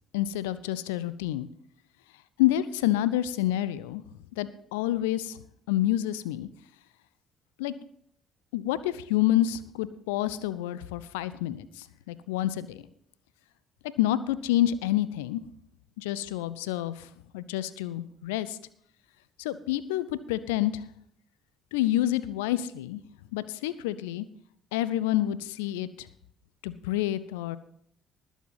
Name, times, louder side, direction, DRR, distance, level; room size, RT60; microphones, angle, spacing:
voice 1, 0.1-1.5 2.4-4.0 4.4-5.4 5.7-6.5 7.6-7.7 8.5-12.8 14.0-15.4 16.0-17.1 17.3-18.6 19.4-20.8 21.7-23.0 23.3-24.3 24.7-26.1 26.6-27.6, left 13 dB, 70° left, 17 dB, 0.6 m, -28 dB
20.0 x 7.2 x 4.0 m, 0.67 s
figure-of-eight pair, 50°, 0 cm